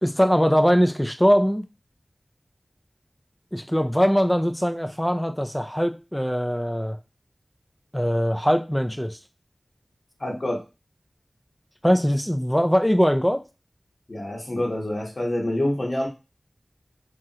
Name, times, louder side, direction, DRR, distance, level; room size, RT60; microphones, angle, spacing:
voice 1, 0.0-1.7 3.5-7.0 7.9-9.2 11.8-13.4, equal, 5° left, 0.4 m, -21 dB
voice 2, 10.2-10.6 14.1-16.1, left 1 dB, 50° left, 1.1 m, -26 dB
3.0 x 2.4 x 2.7 m
wide cardioid pair, 60°, 0 cm